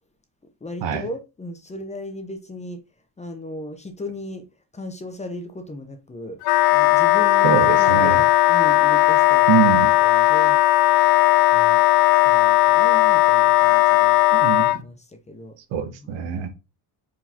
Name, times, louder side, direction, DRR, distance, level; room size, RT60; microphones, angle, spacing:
voice 1, 0.6-2.8 3.2-4.4 4.7-9.5 10.0-10.6 11.5-11.8 12.2-14.2 14.7-15.6 16.0-16.4, left 1 dB, 15° left, 0.7 m, -36 dB
Wind instrument woodwind instrument, 6.4-14.8, left 15 dB, 80° left, 0.6 m, -16 dB
voice 2, 7.4-8.2 9.5-9.9 14.3-14.7 15.7-16.5, right 7 dB, 70° right, 1.0 m, -23 dB
4.7 x 3.8 x 2.8 m
cardioid pair, 110°, 46 cm